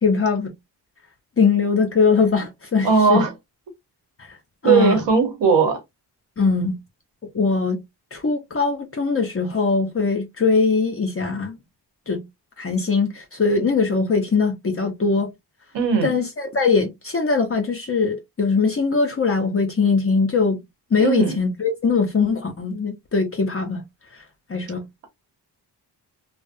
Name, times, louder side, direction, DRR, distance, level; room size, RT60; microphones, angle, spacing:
voice 1, 0.0-0.5 1.4-3.3 4.2-4.4 4.6-5.0 6.4-6.8 7.3-7.8 8.1-11.6 12.1-12.2 12.6-15.3 16.0-20.6 20.9-23.8 24.5-24.9, left 4 dB, 35° left, 0.6 m, -21 dB
voice 2, 2.8-3.3 4.6-5.8 15.7-16.1 21.0-21.4, right 5 dB, 85° right, 1.0 m, -18 dB
2.6 x 2.0 x 2.5 m
cardioid pair, 85°, 42 cm